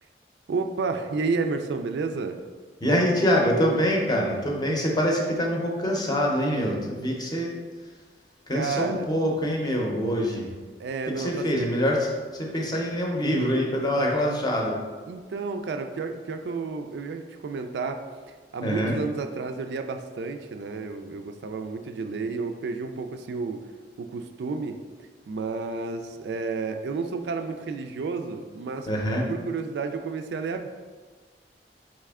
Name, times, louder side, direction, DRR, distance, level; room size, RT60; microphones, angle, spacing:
voice 1, 0.5-2.4 8.5-9.1 10.8-11.5 15.1-18.0 18.5-23.6 24.0-24.8 25.3-28.9 29.3-30.7, right 4 dB, 70° right, 6 dB, 0.3 m, -31 dB
voice 2, 2.8-7.5 8.5-10.5 11.2-14.8 18.6-18.9 28.9-29.3, equal, 25° left, 0 dB, 0.6 m, -25 dB
4.2 x 3.2 x 3.5 m, 1.5 s
head